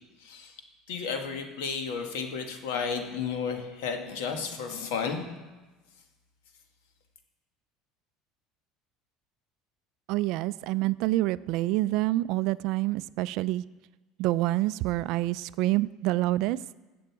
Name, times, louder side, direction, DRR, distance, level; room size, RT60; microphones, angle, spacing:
voice 1, 0.2-0.5 0.9-5.3, left 5 dB, 90° left, 4 dB, 1.6 m, -32 dB
voice 2, 10.1-13.6 14.2-16.6, right 17 dB, 60° right, 17 dB, 0.3 m, -27 dB
15.5 x 7.8 x 4.7 m, 1.2 s
cardioid pair, 150°, 0 cm